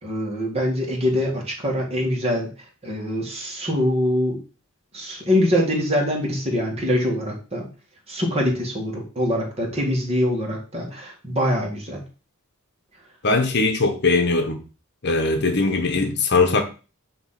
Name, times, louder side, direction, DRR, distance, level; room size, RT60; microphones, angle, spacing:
voice 1, 0.0-2.5 2.8-4.4 4.9-7.7 8.1-12.0, left 1 dB, 30° right, 2.1 m, -24 dB
voice 2, 13.2-14.6 15.0-16.6, left 3 dB, 50° left, 1.1 m, -20 dB
9.4 x 3.2 x 5.9 m
head